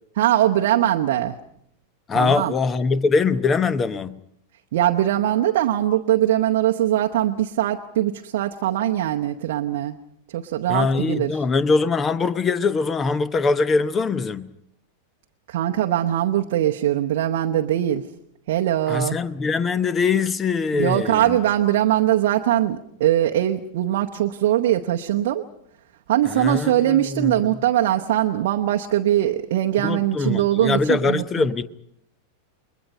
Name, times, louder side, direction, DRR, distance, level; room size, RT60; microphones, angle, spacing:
voice 1, 0.2-1.4 2.1-2.5 4.7-10.0 10.3-11.4 15.5-18.1 18.5-19.2 20.7-25.5 26.1-31.5, right 12 dB, 55° right, 0.9 m, -21 dB
voice 2, 2.1-4.2 10.7-14.5 18.9-21.4 26.3-27.5 29.8-31.6, left 4 dB, 20° left, 1.0 m, -22 dB
30.0 x 22.0 x 5.3 m
figure-of-eight pair, 90°, 0 cm